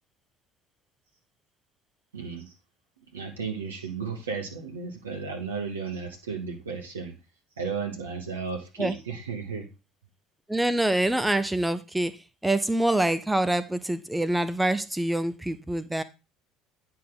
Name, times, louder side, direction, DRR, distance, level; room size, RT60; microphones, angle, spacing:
voice 1, 2.1-2.5 3.1-7.1 7.6-9.7, right 5 dB, 80° right, 1.3 m, -34 dB
voice 2, 10.5-16.0, right 1 dB, 10° right, 0.7 m, -26 dB
9.5 x 5.7 x 3.8 m
figure-of-eight pair, 60°, 0 cm